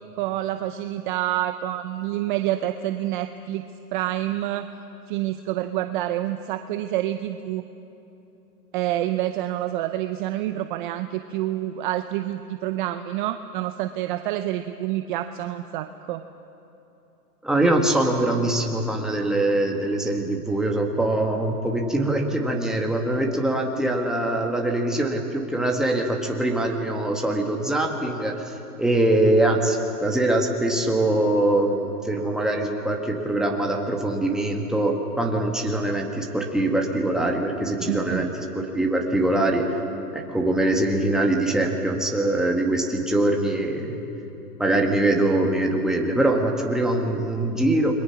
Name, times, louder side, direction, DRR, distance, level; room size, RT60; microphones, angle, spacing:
voice 1, 0.2-3.6 3.9-4.7 5.1-7.6 8.7-16.2 37.8-38.3, right 13 dB, 35° right, 9 dB, 0.7 m, -27 dB
voice 2, 17.4-28.4 28.8-38.3 38.5-39.7 40.1-44.0 44.6-47.9, right 1 dB, ahead, 0 dB, 1.9 m, -23 dB
29.5 x 22.0 x 6.0 m, 2.9 s
hypercardioid pair, 140°, 47 cm